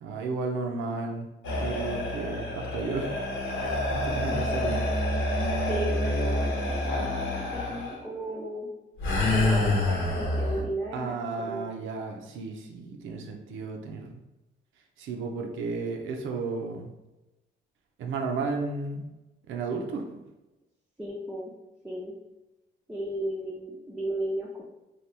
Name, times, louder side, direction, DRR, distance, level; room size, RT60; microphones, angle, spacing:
voice 1, 0.0-3.2 3.5-4.8 9.5-9.6 10.9-14.2 15.0-16.9 18.0-19.1 19.5-20.0, right 4 dB, 80° right, 2 dB, 0.6 m, -33 dB
sound 1, 1.4-7.9 9.0-10.6, left 1 dB, 75° left, 1.0 m, -27 dB
voice 2, 5.7-8.7 9.2-11.8 21.0-21.5 21.8-22.1 22.9-24.6, right 1 dB, 5° right, -6 dB, 0.5 m, -35 dB
2.9 x 2.3 x 3.3 m, 1.0 s
cardioid pair, 90°, 20 cm